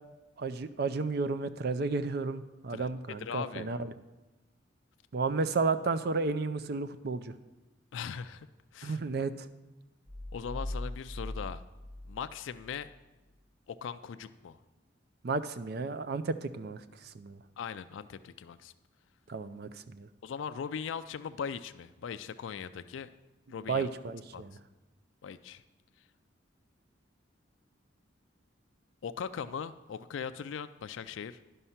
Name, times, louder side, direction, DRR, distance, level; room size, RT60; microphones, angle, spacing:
voice 1, 0.4-3.9 5.1-7.3 8.8-9.5 15.2-17.4 19.3-20.1 23.7-24.6, right 4 dB, 55° right, 12 dB, 0.4 m, -32 dB
voice 2, 3.2-3.7 7.9-8.5 8.7-9.0 10.3-11.6 12.0-12.9 13.7-14.6 17.6-18.7 20.2-23.1 23.5-23.9 24.3-24.4 25.2-25.6 29.0-31.4, left 7 dB, 80° left, 11 dB, 0.4 m, -39 dB
sound 1, 10.1-12.8, left 1 dB, 30° right, 3.2 m, -40 dB
11.0 x 5.4 x 5.7 m, 1.1 s
head